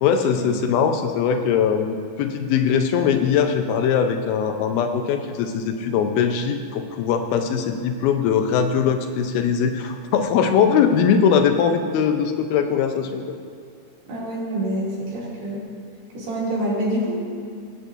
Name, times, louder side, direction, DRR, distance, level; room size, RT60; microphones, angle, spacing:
voice 1, 0.0-13.2, left 7 dB, 90° left, 6 dB, 2.6 m, -21 dB
voice 2, 14.1-15.6 16.1-17.2, right 1 dB, 90° right, -7 dB, 4.6 m, -26 dB
19.5 x 7.7 x 2.6 m, 2.3 s
omnidirectional pair, 4.2 m